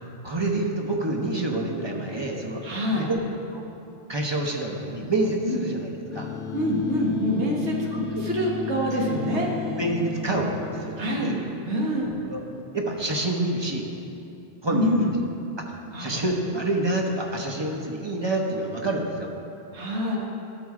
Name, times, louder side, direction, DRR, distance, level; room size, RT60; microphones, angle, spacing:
voice 1, 0.2-2.6 2.9-3.2 3.5-3.6 4.1-6.3 7.9-8.2 8.9-9.0 9.8-11.4 12.2-12.5 12.7-13.9 14.6-15.2 15.6-19.3, right 2 dB, 25° right, 1 dB, 0.7 m, -27 dB
voice 2, 2.6-3.1 5.4-5.6 6.5-7.9 8.2-9.5 11.0-11.3 11.7-12.1 14.7-15.1 15.9-16.2 19.7-20.2, equal, 80° right, -2 dB, 1.5 m, -25 dB
sound 1, 6.1-12.7, left 5 dB, 70° left, 0.8 m, -34 dB
12.5 x 4.2 x 4.8 m, 2.7 s
omnidirectional pair, 1.2 m